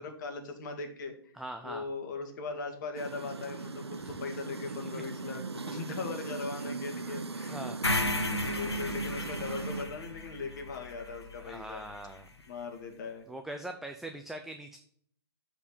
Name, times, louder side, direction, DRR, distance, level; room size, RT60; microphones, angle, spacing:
voice 1, 0.0-1.4 1.6-7.7 8.5-11.8 12.5-13.3, left 4 dB, 45° left, 5 dB, 1.9 m, -39 dB
voice 2, 1.3-1.8 4.0-4.2 7.5-8.0 11.4-12.3 13.3-14.8, right 1 dB, ahead, 6 dB, 0.5 m, -42 dB
sound 1, 2.9-9.8, right 4 dB, 85° right, 0.6 m, -39 dB
sound 2, 7.8-12.0, left 2 dB, 90° left, 1.3 m, -34 dB
6.9 x 4.9 x 6.9 m, 0.62 s
figure-of-eight pair, 125°, 13 cm